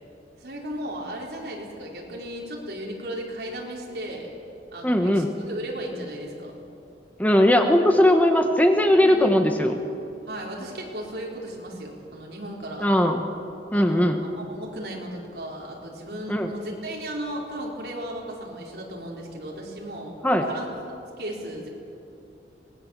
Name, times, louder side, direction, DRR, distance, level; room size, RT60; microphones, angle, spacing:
voice 1, 0.4-4.3 4.7-6.6 9.0-9.6 10.3-12.9 13.7-14.1 14.4-20.2 20.4-21.7, right 1 dB, 60° right, -2 dB, 4.7 m, -35 dB
voice 2, 4.8-5.3 7.2-9.7 12.8-13.2 13.7-14.2 16.3-16.5 20.2-20.5, left 1 dB, 10° left, 4 dB, 1.1 m, -19 dB
24.5 x 20.0 x 7.5 m, 2.7 s
head